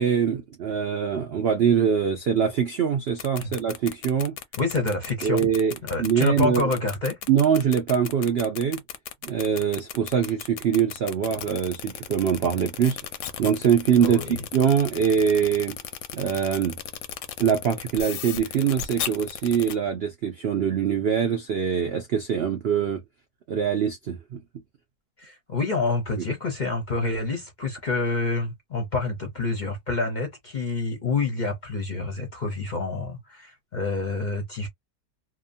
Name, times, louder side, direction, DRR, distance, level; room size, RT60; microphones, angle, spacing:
voice 1, 0.0-4.3 5.2-5.7 6.0-6.6 7.3-8.8 9.2-13.0 13.4-15.8 16.1-16.8 17.4-23.0 23.5-24.4, right 7 dB, 85° right, 0.5 m, -23 dB
sound 1, 3.1-19.7, left 10 dB, 85° left, 1.2 m, -35 dB
voice 2, 4.6-5.5 5.8-7.2 14.0-14.4 25.2-34.7, left 3 dB, 40° left, 0.6 m, -27 dB
2.9 x 2.2 x 2.5 m
omnidirectional pair, 1.7 m